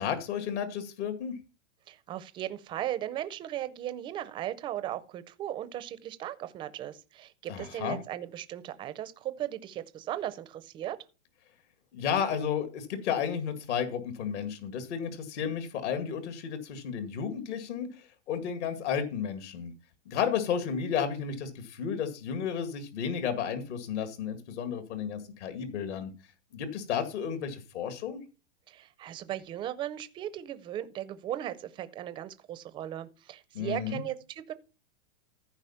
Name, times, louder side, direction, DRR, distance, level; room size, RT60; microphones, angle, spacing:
voice 1, 0.0-1.3 7.5-8.0 11.9-19.7 20.1-26.1 26.5-28.2 33.5-34.0, left 7 dB, 65° left, 2.1 m, -32 dB
voice 2, 1.9-11.0 28.7-34.5, right 12 dB, 15° right, 0.4 m, -37 dB
14.5 x 4.9 x 5.7 m
supercardioid pair, 150°, 37 cm